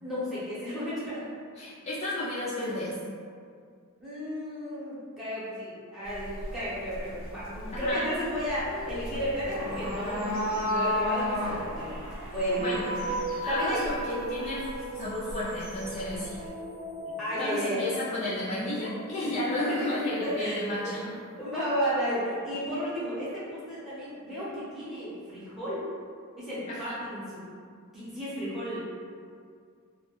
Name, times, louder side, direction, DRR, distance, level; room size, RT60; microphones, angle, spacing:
voice 1, 0.0-1.3 4.0-11.9 12.3-12.9 13.5-13.9 17.2-17.8 19.2-19.3 19.7-20.9 21.4-25.9 26.4-27.4 27.9-28.8, equal, ahead, -12 dB, 0.7 m, -33 dB
voice 2, 1.6-2.9 7.7-8.1 12.6-12.9 13.4-14.7 14.9-16.3 17.1-21.1 26.7-27.0, left 1 dB, 30° left, -8 dB, 0.3 m, -32 dB
sound 1, 6.1-16.5, left 1 dB, 90° right, 0.9 m, -35 dB
sound 2, 8.6-21.3, right 1 dB, 65° right, 0.5 m, -40 dB
2.2 x 2.1 x 2.9 m, 2.2 s
head